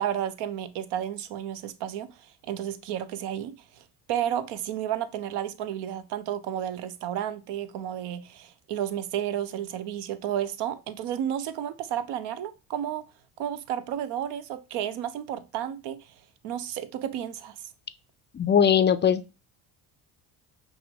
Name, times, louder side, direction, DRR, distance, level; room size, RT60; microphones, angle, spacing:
voice 1, 0.0-2.1 2.4-13.0 13.4-16.1 16.4-17.6, right 10 dB, 75° right, 0.6 m, -32 dB
voice 2, 18.3-19.3, left 8 dB, 30° left, 0.3 m, -21 dB
5.7 x 2.1 x 3.6 m
supercardioid pair, 70°, 42 cm